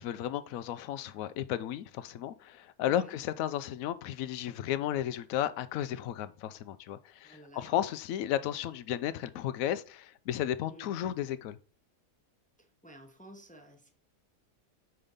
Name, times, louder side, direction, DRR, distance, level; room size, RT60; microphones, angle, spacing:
voice 1, 0.0-11.6, left 11 dB, 75° left, 1.0 m, -34 dB
voice 2, 2.8-3.2 7.2-7.8 10.7-10.9 12.8-13.9, equal, 5° left, 0.7 m, -52 dB
5.1 x 4.5 x 5.4 m
omnidirectional pair, 1.5 m